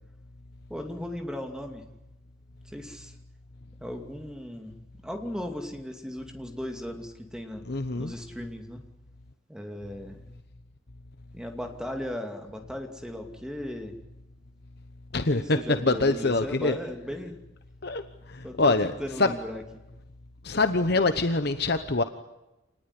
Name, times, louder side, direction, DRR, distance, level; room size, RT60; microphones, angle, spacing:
voice 1, 0.7-1.8 2.7-3.1 3.8-7.6 8.0-8.8 9.5-10.4 11.3-14.0 15.3-17.4 18.4-19.8, left 1 dB, 5° right, 4 dB, 2.7 m, -37 dB
voice 2, 7.7-8.1 15.1-16.8 17.8-18.0 18.3-18.9 19.2-19.3 20.4-22.0, left 3 dB, 55° left, 9 dB, 1.0 m, -24 dB
27.5 x 19.5 x 10.0 m, 1.0 s
head